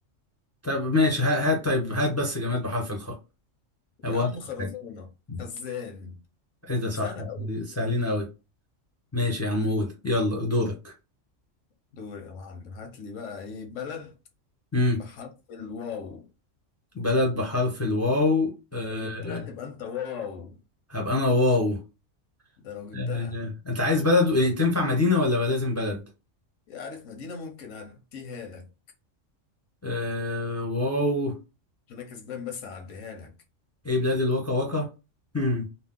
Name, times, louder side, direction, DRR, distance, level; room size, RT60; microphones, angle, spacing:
voice 1, 0.6-3.1 4.0-4.3 4.6-4.7 5.3-5.4 6.7-7.1 7.4-8.3 9.1-10.9 14.7-15.0 16.9-19.4 20.9-21.8 22.9-26.0 29.8-31.3 33.8-34.9 35.3-35.6, left 2 dB, 20° left, 0.4 m, -25 dB
voice 2, 4.0-5.1 5.4-6.2 7.0-7.5 11.9-14.1 15.0-16.3 18.9-20.6 22.6-23.4 26.7-28.7 31.9-33.3, left 6 dB, 85° left, 1.1 m, -38 dB
2.8 x 2.0 x 3.6 m
omnidirectional pair, 1.3 m